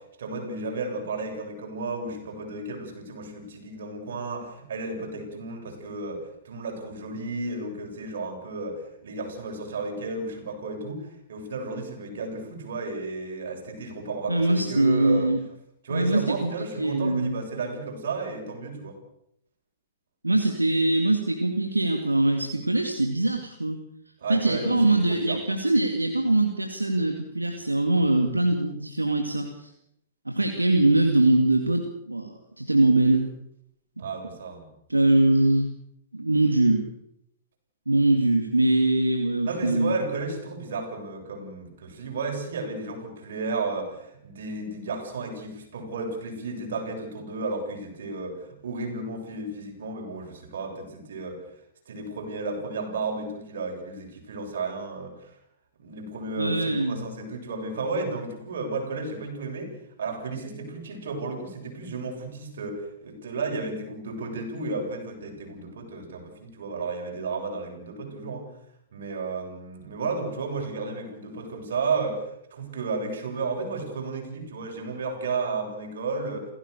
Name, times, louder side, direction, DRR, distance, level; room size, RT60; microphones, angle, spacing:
voice 1, 0.0-15.3 15.8-19.0 24.2-25.4 34.0-34.7 39.4-51.4 51.9-55.3 55.8-68.5 68.9-76.5, right 3 dB, 65° right, 2 dB, 7.5 m, -33 dB
voice 2, 14.3-15.4 15.9-17.4 20.2-23.8 24.3-29.7 30.3-33.3 34.9-35.7 36.1-36.9 37.9-40.0 56.4-57.1, right 2 dB, 90° right, 4 dB, 2.3 m, -22 dB
29.0 x 16.5 x 6.8 m, 0.77 s
figure-of-eight pair, 110°, 0 cm